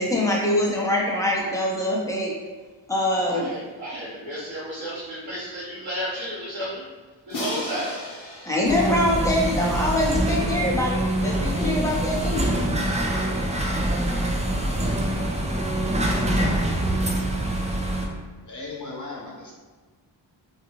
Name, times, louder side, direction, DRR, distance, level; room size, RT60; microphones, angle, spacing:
voice 1, 0.0-2.3 2.9-3.6 7.5-7.6 8.5-12.4, left 1 dB, 5° left, -3 dB, 0.7 m, -24 dB
voice 2, 3.1-6.8 7.3-8.0 15.0-15.6, equal, 65° right, -9 dB, 1.1 m, -33 dB
Crash cymbal, 7.3-10.3, left 1 dB, 80° left, 0.8 m, -36 dB
sound 1, 8.6-18.1, right 1 dB, 15° right, 0.4 m, -25 dB
voice 3, 18.4-19.6, left 3 dB, 40° left, -4 dB, 1.0 m, -37 dB
2.6 x 2.3 x 3.0 m, 1.4 s
cardioid pair, 45°, 47 cm